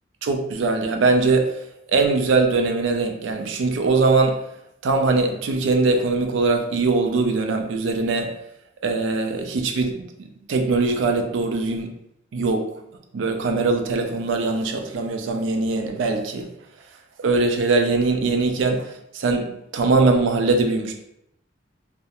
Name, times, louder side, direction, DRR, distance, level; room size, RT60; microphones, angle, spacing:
voice 1, 0.2-1.6 1.9-4.4 4.8-8.4 8.8-10.1 10.5-12.0 12.3-12.7 13.1-16.5 17.2-20.9, right 3 dB, 85° right, 0.4 m, -21 dB
2.3 x 2.0 x 2.8 m
head